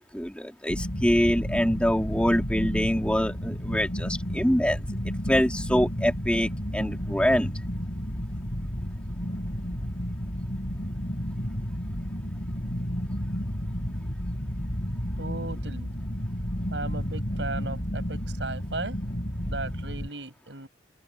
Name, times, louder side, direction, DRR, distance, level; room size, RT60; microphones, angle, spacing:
voice 1, 0.1-4.8 5.3-7.5, equal, 5° left, 3.4 m, -25 dB
sound 1, 0.7-20.1, equal, 50° left, 4.5 m, -32 dB
voice 2, 15.2-16.0 16.7-19.0 19.4-20.7, right 2 dB, 85° right, 7.9 m, -36 dB
open air
head